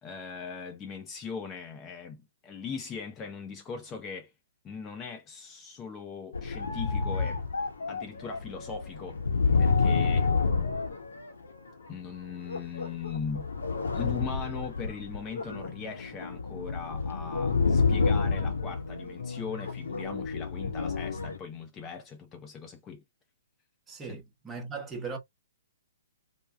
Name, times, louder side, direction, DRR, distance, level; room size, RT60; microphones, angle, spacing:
voice 1, 0.0-4.3 4.6-7.4 7.9-9.2 9.6-10.3 11.9-13.5 13.9-23.0 24.1-24.2, left 6 dB, 20° left, 0.4 m, -39 dB
sound 1, 6.3-11.7 12.5-21.4, left 4 dB, 75° left, 0.7 m, -29 dB
voice 2, 23.9-25.2, right 5 dB, 15° right, 0.9 m, -38 dB
3.2 x 2.0 x 2.3 m
figure-of-eight pair, 120°, 0 cm